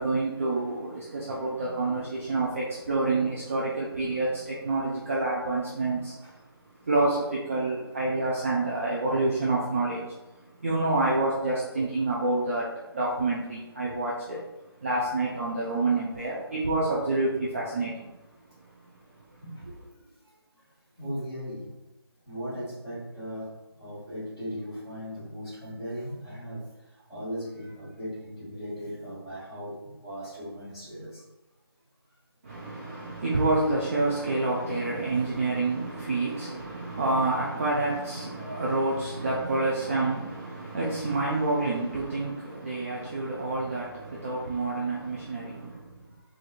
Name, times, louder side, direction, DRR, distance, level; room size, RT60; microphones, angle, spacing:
voice 1, 0.0-6.4 6.7-14.4 14.8-18.1 19.7-19.8 32.4-46.1, right 2 dB, 30° right, -5 dB, 0.5 m, -28 dB
voice 2, 21.0-21.6 22.3-23.5 23.8-26.6 27.1-29.7 30.0-31.2, equal, 5° right, -16 dB, 1.5 m, -37 dB
3.8 x 3.0 x 2.4 m, 1.0 s
figure-of-eight pair, 160°, 14 cm